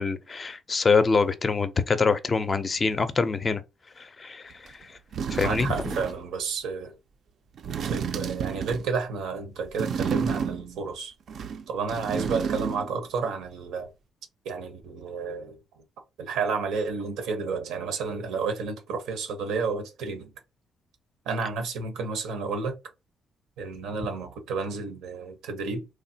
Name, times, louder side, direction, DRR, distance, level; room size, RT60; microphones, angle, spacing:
voice 1, 0.0-3.6 4.0-5.0 5.3-5.7, left 4 dB, 35° left, 0.4 m, -25 dB
sound 1, 4.7-4.8 5.1-6.3 7.6-9.0 9.7-10.8 11.3-13.0 13.2-13.3, right 7 dB, 60° right, 0.3 m, -31 dB
voice 2, 5.4-6.9 7.8-11.1 11.7-13.9 14.4-15.6 16.2-20.3 21.3-22.8 23.6-25.9, right 4 dB, 90° right, 0.7 m, -31 dB
3.1 x 2.1 x 2.7 m
cardioid pair, 90°, 0 cm